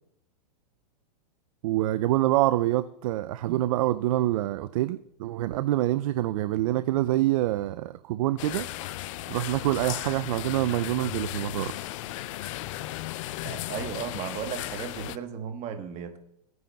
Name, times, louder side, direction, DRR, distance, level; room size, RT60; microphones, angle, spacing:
voice 1, 1.6-8.7 9.3-11.8, right 15 dB, 55° right, 0.4 m, -26 dB
sound 1, 8.4-15.2, left 15 dB, 50° left, 0.4 m, -35 dB
voice 2, 13.4-16.2, right 8 dB, 35° right, 1.2 m, -35 dB
16.0 x 9.4 x 2.3 m
hypercardioid pair, 120°, 21 cm